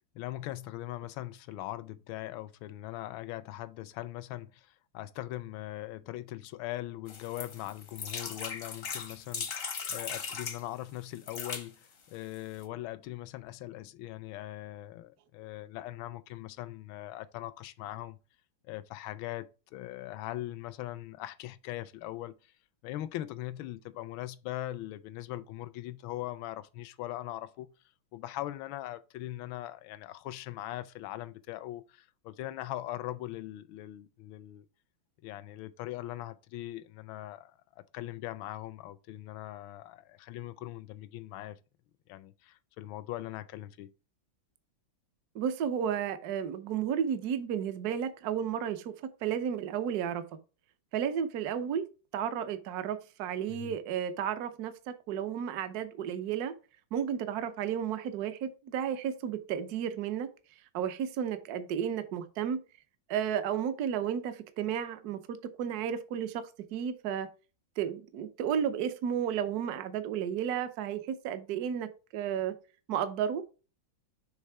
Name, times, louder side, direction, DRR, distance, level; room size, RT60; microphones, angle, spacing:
voice 1, 0.1-18.2 18.6-22.5 22.8-27.7 28.1-34.7 35.2-41.6 42.1-43.9 53.5-53.8, left 15 dB, 80° left, 1.4 m, -41 dB
sound 1, 7.1-10.6 11.2-11.7 12.3-12.4 12.6-12.7, left 6 dB, 50° left, 0.7 m, -38 dB
voice 2, 45.3-48.9 49.2-50.2 50.9-51.9 52.1-56.5 56.9-60.3 60.7-62.6 63.1-66.4 66.7-67.3 67.8-72.5 72.9-73.4, right 8 dB, 65° right, 1.1 m, -32 dB
6.7 x 3.6 x 4.7 m
omnidirectional pair, 2.2 m